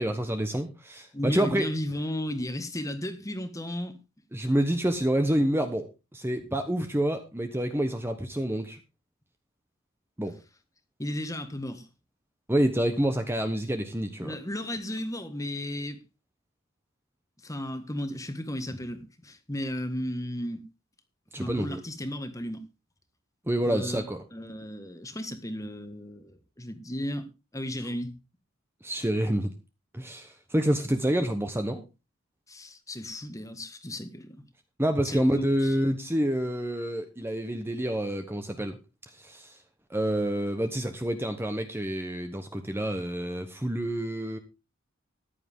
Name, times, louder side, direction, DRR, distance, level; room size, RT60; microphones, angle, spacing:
voice 1, 0.0-1.7 4.3-8.8 10.2-10.3 12.5-14.3 21.3-21.8 23.5-24.2 28.8-29.5 29.9-31.8 34.8-38.8 39.1-39.6 39.9-44.4, right 1 dB, 10° right, 1.0 m, -28 dB
voice 2, 1.1-4.0 11.0-11.9 14.2-16.0 17.4-20.6 21.3-22.6 23.6-24.0 24.3-28.1 32.5-34.4 35.0-35.8, left 1 dB, 15° left, 1.5 m, -34 dB
14.5 x 10.5 x 3.6 m
head